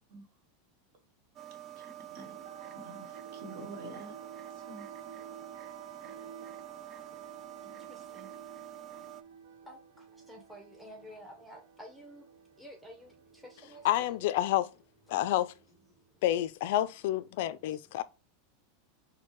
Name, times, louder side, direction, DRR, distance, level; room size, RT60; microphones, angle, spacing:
sound 1, 1.4-9.2, right 12 dB, 30° right, 0.4 m, -47 dB
voice 1, 1.8-2.3 2.8-4.1 4.7-4.8, right 2 dB, 55° right, 1.3 m, -47 dB
sound 2, 2.0-16.1, right 6 dB, 75° right, 0.6 m, -53 dB
voice 2, 7.6-8.3 8.7-9.1 9.6-14.2 15.1-15.5 15.9-16.2 17.4-18.0, equal, ahead, 0.8 m, -53 dB
voice 3, 13.8-14.7 15.1-15.5 16.2-18.0, left 13 dB, 65° left, 0.3 m, -29 dB
4.3 x 2.1 x 3.0 m
supercardioid pair, 145°, 0 cm